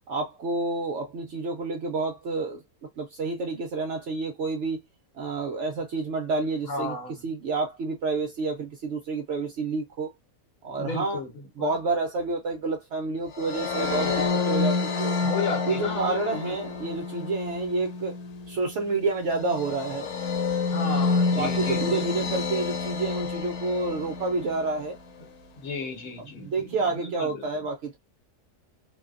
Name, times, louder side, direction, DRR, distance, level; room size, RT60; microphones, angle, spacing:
voice 1, 0.1-2.6 3.0-4.8 5.1-6.9 7.2-10.1 10.6-11.2 11.6-15.2 15.7-18.1 18.5-20.1 20.6-20.8 21.3-25.0 25.8-25.9 26.2-28.0, right 3 dB, 70° right, 0.7 m, -29 dB
voice 2, 6.7-7.2 10.7-11.3 11.6-11.7 15.2-16.5 20.7-22.2 25.6-27.6, left 4 dB, 65° left, 1.2 m, -34 dB
sound 1, 13.4-24.7, left 4 dB, 90° left, 1.2 m, -29 dB
2.6 x 2.1 x 2.3 m
omnidirectional pair, 1.6 m